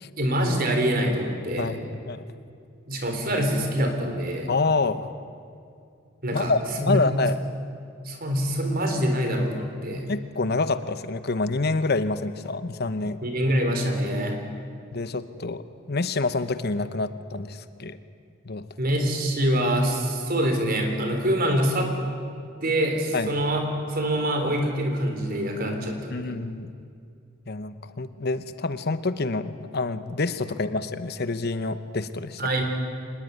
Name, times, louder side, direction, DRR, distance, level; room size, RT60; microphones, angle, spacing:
voice 1, 0.2-1.7 2.9-4.5 6.2-6.5 6.8-7.0 8.0-10.2 13.2-14.4 18.8-21.9 22.6-26.4 32.4-32.6, equal, 50° right, 4 dB, 3.9 m, -25 dB
voice 2, 1.6-2.2 4.5-5.1 6.3-7.4 9.9-13.2 14.1-14.4 14.9-18.0 18.4-18.6 23.1-23.3 26.1-26.7 27.5-32.4, left 3 dB, 55° left, 12 dB, 0.9 m, -27 dB
25.0 x 20.0 x 9.3 m, 2.4 s
head